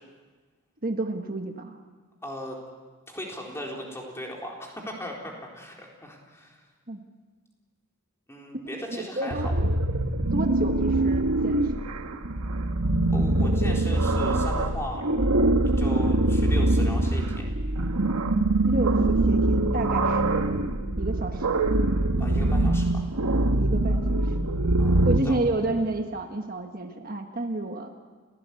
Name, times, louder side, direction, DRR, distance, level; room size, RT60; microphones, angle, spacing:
voice 1, 0.8-1.8 6.9-7.0 8.7-9.5 10.3-11.9 18.6-20.5 21.0-21.6 23.6-24.2 25.0-27.9, right 2 dB, 40° right, 4 dB, 1.4 m, -31 dB
voice 2, 2.2-2.6 3.1-6.6 8.3-9.4 13.1-15.0 15.8-17.5 22.2-23.1 24.8-25.4, left 1 dB, 10° left, -1 dB, 4.0 m, -37 dB
sound 1, 9.3-25.2, right 2 dB, 85° right, 1.4 m, -23 dB
29.0 x 16.5 x 8.3 m, 1.4 s
head